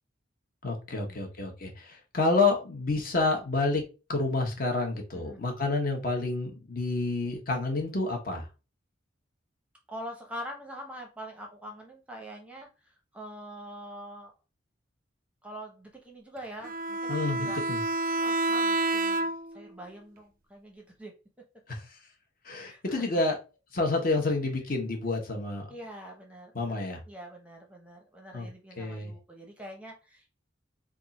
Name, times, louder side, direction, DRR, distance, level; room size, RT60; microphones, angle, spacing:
voice 1, 0.6-3.8 4.1-8.5 17.1-17.8 21.7-21.8 22.4-23.4 23.7-25.7 26.5-27.0 28.3-28.5 28.8-29.1, left 3 dB, 45° left, 2 dB, 1.0 m, -29 dB
voice 2, 9.9-12.7 13.1-14.3 15.4-17.7 18.2-21.1 22.5-23.2 25.7-30.3, equal, 5° right, 1 dB, 0.7 m, -44 dB
Bowed string instrument, 16.6-19.6, right 2 dB, 45° right, 0.4 m, -29 dB
3.5 x 2.4 x 4.0 m, 0.31 s
head